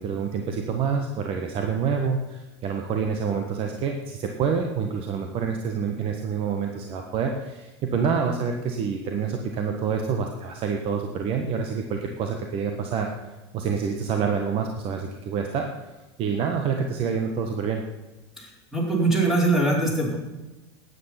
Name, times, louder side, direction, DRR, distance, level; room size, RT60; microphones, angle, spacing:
voice 1, 0.0-13.1 13.5-15.7 16.2-17.8, right 6 dB, 40° right, 3 dB, 1.4 m, -27 dB
voice 2, 18.4-20.2, right 2 dB, 5° right, -3 dB, 4.8 m, -22 dB
12.5 x 9.8 x 5.9 m, 1.1 s
supercardioid pair, 115°, 14 cm